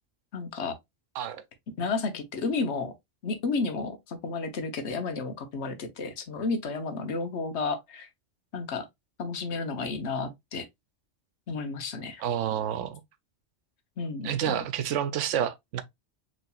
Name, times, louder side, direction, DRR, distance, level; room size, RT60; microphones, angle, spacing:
voice 1, 0.3-0.8 1.8-2.9 3.2-8.1 8.5-8.9 9.2-10.7 11.5-12.2 14.0-14.6, left 4 dB, 65° left, 1.1 m, -32 dB
voice 2, 12.2-13.0 14.2-15.8, right 9 dB, 85° right, 0.9 m, -29 dB
5.5 x 3.1 x 2.3 m
omnidirectional pair, 1.2 m